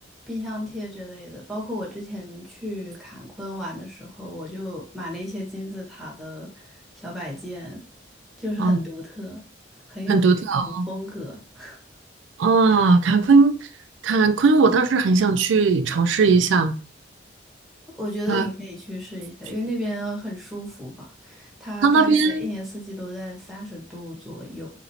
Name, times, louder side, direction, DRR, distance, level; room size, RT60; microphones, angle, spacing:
voice 1, 0.3-7.8 8.4-9.4 9.9-11.8 18.0-24.7, left 1 dB, ahead, 1.2 m, -34 dB
voice 2, 10.1-10.9 12.4-13.6 14.0-16.7 18.3-18.4 21.8-22.5, right 4 dB, 80° right, 0.4 m, -18 dB
4.0 x 3.0 x 2.7 m
head